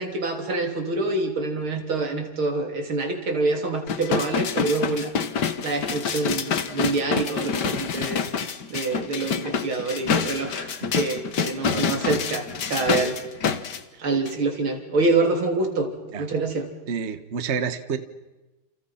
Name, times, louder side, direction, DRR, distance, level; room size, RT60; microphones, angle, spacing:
voice 1, 0.0-5.3 5.6-8.3 8.7-13.2 14.0-15.9 16.2-16.7, right 3 dB, 75° right, 4 dB, 4.2 m, -26 dB
sound 1, 3.9-13.8 14.3-14.4, left 6 dB, 55° left, 1.8 m, -27 dB
voice 2, 11.6-12.0 14.1-14.2 16.1-16.2 16.9-18.0, right 6 dB, 35° right, 10 dB, 1.4 m, -29 dB
30.0 x 29.0 x 5.9 m, 1.1 s
omnidirectional pair, 2.3 m